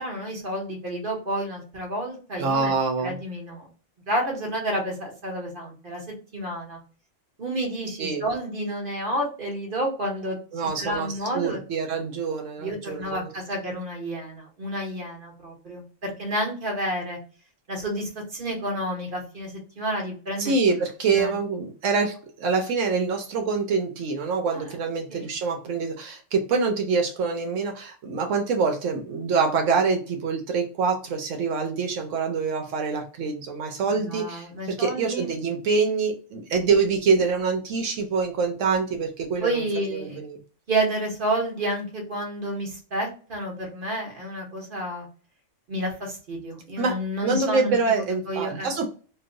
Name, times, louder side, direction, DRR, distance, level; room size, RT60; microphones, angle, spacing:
voice 1, 0.0-2.7 3.0-3.7 4.1-6.0 6.3-6.8 7.4-10.4 10.8-11.6 12.6-17.2 17.7-20.5 21.1-21.4 24.5-24.6 25.1-25.3 34.0-35.3 39.4-40.2 40.7-45.1 45.7-48.9, right 1 dB, 45° right, 0 dB, 1.1 m, -30 dB
voice 2, 2.4-3.2 8.0-8.3 10.5-11.1 11.3-13.3 20.4-39.6 39.9-40.4 46.8-46.9 47.2-48.9, right 4 dB, 75° right, 3 dB, 0.9 m, -25 dB
3.0 x 2.0 x 3.6 m, 0.39 s
omnidirectional pair, 1.3 m